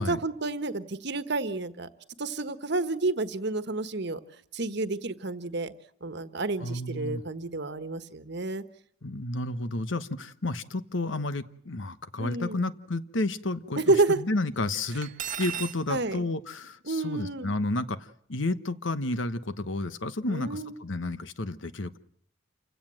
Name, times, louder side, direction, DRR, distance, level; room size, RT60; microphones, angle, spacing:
voice 1, 0.0-1.9 2.2-4.2 4.5-5.7 6.0-8.6 12.2-12.6 13.8-14.2 15.9-16.2 16.9-17.5 20.3-20.7, right 3 dB, 60° right, 11 dB, 1.4 m, -29 dB
voice 2, 6.6-7.2 9.0-15.1 15.4-22.0, left 2 dB, 70° left, 13 dB, 1.2 m, -31 dB
Cutlery silverware, 15.0-15.8, right 8 dB, 40° right, 1.0 m, -34 dB
28.5 x 16.5 x 7.8 m, 0.65 s
head